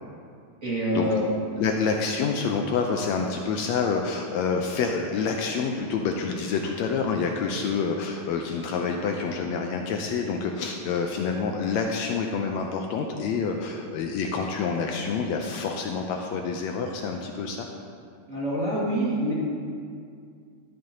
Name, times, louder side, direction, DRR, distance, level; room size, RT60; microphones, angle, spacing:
voice 1, 0.6-1.2 18.3-19.3, equal, 30° right, -8 dB, 1.8 m, -26 dB
voice 2, 1.6-17.7, left 5 dB, 80° left, 2 dB, 1.7 m, -27 dB
12.5 x 10.5 x 2.8 m, 2.3 s
omnidirectional pair, 3.5 m